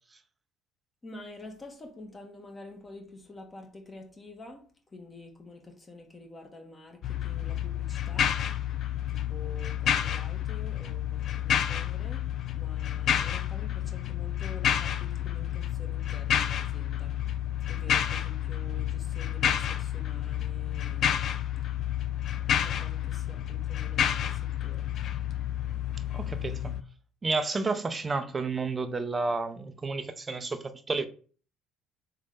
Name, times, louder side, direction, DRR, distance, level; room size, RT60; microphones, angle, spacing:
voice 1, 1.0-8.3 9.1-12.2 12.5-17.1 17.7-21.3 22.6-24.9, left 2 dB, 25° left, 1.2 m, -48 dB
sound 1, 7.0-26.8, left 10 dB, 55° left, 0.4 m, -30 dB
voice 2, 26.1-26.7 27.2-31.1, right 3 dB, 25° right, 0.5 m, -31 dB
3.5 x 3.2 x 3.8 m
hypercardioid pair, 65°, 0 cm